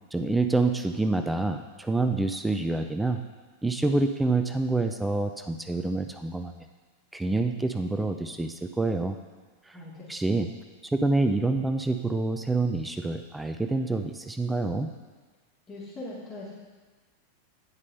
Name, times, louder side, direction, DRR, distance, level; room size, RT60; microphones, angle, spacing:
voice 1, 0.1-3.2 3.6-6.6 7.1-9.2 9.7-9.8 10.1-10.5 10.9-14.9, right 2 dB, 5° right, 6 dB, 0.4 m, -27 dB
voice 2, 9.7-10.4 15.7-16.5, left 2 dB, 25° left, -8 dB, 2.2 m, -41 dB
9.6 x 5.2 x 5.4 m, 1.3 s
figure-of-eight pair, 90°, 0 cm